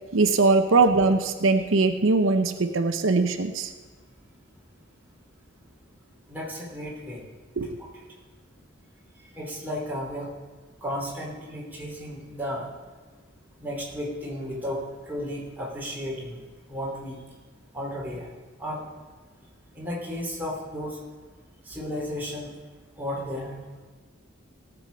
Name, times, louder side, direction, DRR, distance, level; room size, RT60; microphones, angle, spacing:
voice 1, 0.1-3.7 7.6-7.7, right 3 dB, 85° right, 7 dB, 0.7 m, -21 dB
voice 2, 6.3-7.2 9.3-10.3 10.8-12.7 13.6-14.8 15.1-16.4 16.7-17.2 17.7-18.3 18.6-18.8 19.7-21.0 21.7-22.5 23.0-23.6, equal, 10° right, -5 dB, 3.0 m, -33 dB
17.5 x 7.2 x 5.2 m, 1.4 s
head